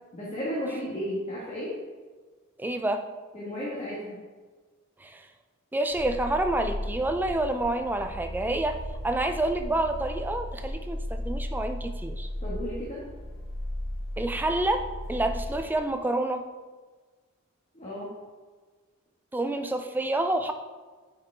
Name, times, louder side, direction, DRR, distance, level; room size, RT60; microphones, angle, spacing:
voice 1, 0.1-1.7 3.3-4.2 12.4-13.0 17.7-18.1, equal, 30° left, -7 dB, 1.4 m, -33 dB
voice 2, 2.6-3.0 5.0-5.2 5.7-8.8 9.0-12.3 14.2-14.8 15.1-16.4 19.3-20.5, right 1 dB, 10° right, 6 dB, 0.4 m, -28 dB
sound 1, 5.9-15.8, left 1 dB, 65° left, 1.0 m, -36 dB
8.9 x 4.9 x 3.3 m, 1.4 s
head